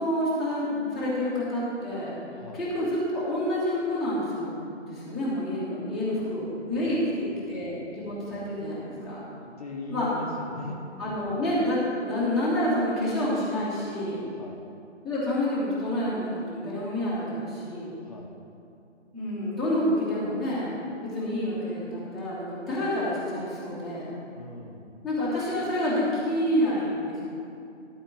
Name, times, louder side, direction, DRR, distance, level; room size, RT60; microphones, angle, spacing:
voice 1, 0.0-2.2 2.5-4.6 4.8-9.2 9.9-10.1 11.0-14.2 15.0-17.9 19.1-20.7 21.1-24.1 25.0-27.3, left 1 dB, ahead, -12 dB, 0.9 m, -28 dB
voice 2, 6.7-7.5 9.4-10.8 14.3-14.6 18.0-18.4 24.3-25.0, left 3 dB, 30° left, -2 dB, 0.8 m, -40 dB
12.0 x 4.4 x 7.5 m, 2.6 s
figure-of-eight pair, 150°, 36 cm